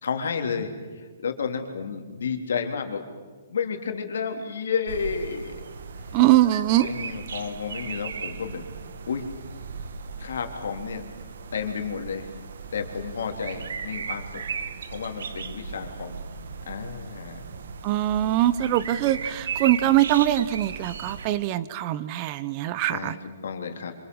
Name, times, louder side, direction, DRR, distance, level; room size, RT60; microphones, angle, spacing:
voice 1, 0.0-3.0 3.5-5.6 6.8-8.7 9.1-9.3 10.2-11.0 11.5-12.3 12.7-14.4 14.9-16.2 16.6-17.4 22.9-23.9, left 6 dB, 80° left, 4 dB, 3.4 m, -31 dB
sound 1, 4.9-21.3, right 5 dB, 70° right, 1.6 m, -37 dB
voice 2, 6.1-6.9 17.8-23.1, right 14 dB, 25° right, 16 dB, 0.8 m, -22 dB
26.5 x 25.5 x 6.4 m, 1.4 s
hypercardioid pair, 165°, 0 cm